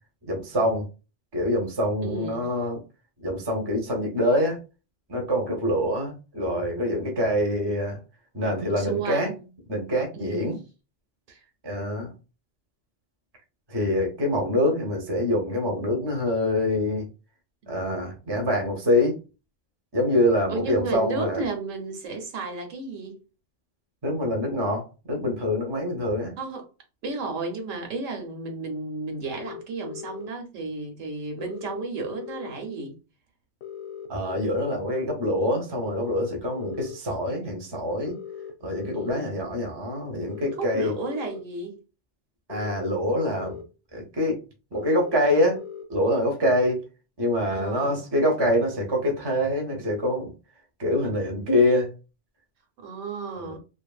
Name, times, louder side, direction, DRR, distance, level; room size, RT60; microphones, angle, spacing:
voice 1, 0.2-0.8 1.3-2.8 3.2-4.6 5.1-8.0 8.3-9.3 9.7-10.6 11.6-12.1 13.7-17.1 17.7-19.2 19.9-21.4 24.0-26.3 34.1-38.2 38.6-40.9 42.5-43.6 43.9-44.4 44.7-45.6 45.9-46.8 47.2-50.3 50.8-51.9 53.4-53.6, left 1 dB, 25° right, 0.6 m, -25 dB
voice 2, 2.0-2.5 8.8-9.5 10.1-10.5 11.3-11.4 17.6-17.7 20.5-23.2 26.4-26.7 27.0-33.0 38.9-39.4 40.6-41.8 47.5-48.0 52.8-53.6, right 3 dB, 85° right, 1.1 m, -33 dB
sound 1, 29.3-30.3 31.4-32.5 33.6-34.7 35.8-37.0 38.1-39.2 40.3-41.4 42.5-43.6 44.7-45.8, left 8 dB, 90° left, 0.9 m, -39 dB
2.7 x 2.5 x 2.3 m
omnidirectional pair, 1.3 m